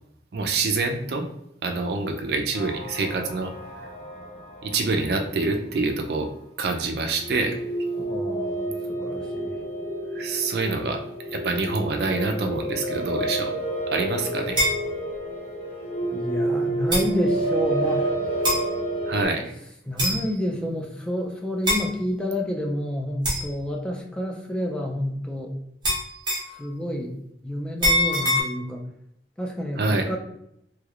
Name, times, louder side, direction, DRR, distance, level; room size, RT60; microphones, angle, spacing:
voice 1, 0.3-1.3 1.6-3.9 4.6-6.3 6.6-7.6 10.1-11.0 11.3-13.5 13.9-14.6 19.1-19.5 29.8-30.1, right 3 dB, 60° right, 4 dB, 0.4 m, -26 dB
sound 1, 2.5-6.0 7.2-19.3, right 1 dB, 45° left, 0.9 m, -29 dB
voice 2, 8.0-9.5 16.1-18.1 19.9-25.5 26.5-27.1 27.4-28.8 29.4-30.2, left 1 dB, 5° left, 0 dB, 0.3 m, -29 dB
sound 2, 14.6-14.8 15.9-16.0 16.9-17.1 18.4-18.7 20.0-20.3 21.6-21.9 23.2-23.5 25.8-26.6 27.8-28.4, equal, 25° right, 0.9 m, -23 dB
3.2 x 3.1 x 2.4 m, 0.76 s
head